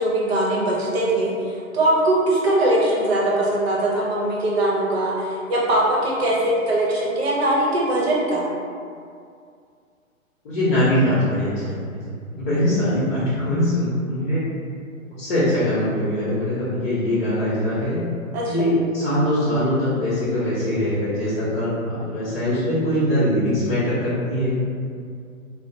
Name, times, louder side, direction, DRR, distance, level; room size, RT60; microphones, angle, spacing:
voice 1, 0.0-8.5 18.3-18.6, right 1 dB, 50° right, -5 dB, 0.8 m, -21 dB
voice 2, 10.4-11.7 12.4-14.4 15.2-18.0 18.4-24.6, left 1 dB, 45° left, -12 dB, 0.9 m, -22 dB
2.8 x 2.0 x 2.7 m, 2.3 s
figure-of-eight pair, 130°, 42 cm